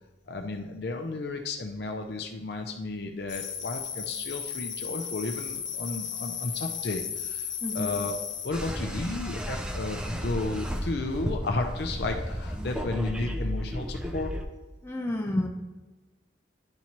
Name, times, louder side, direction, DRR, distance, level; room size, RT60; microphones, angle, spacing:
voice 1, 0.3-7.5 7.7-8.2 8.4-14.3, left 3 dB, 55° left, 4 dB, 0.5 m, -33 dB
sound 1, 3.3-8.5, left 8 dB, 80° left, 1.1 m, -35 dB
voice 2, 7.6-8.0 14.8-15.5, left 1 dB, 10° left, 0 dB, 0.8 m, -30 dB
sound 2, 8.5-14.4, equal, 5° right, 0.4 m, -33 dB
10.5 x 4.3 x 3.0 m, 1.1 s
head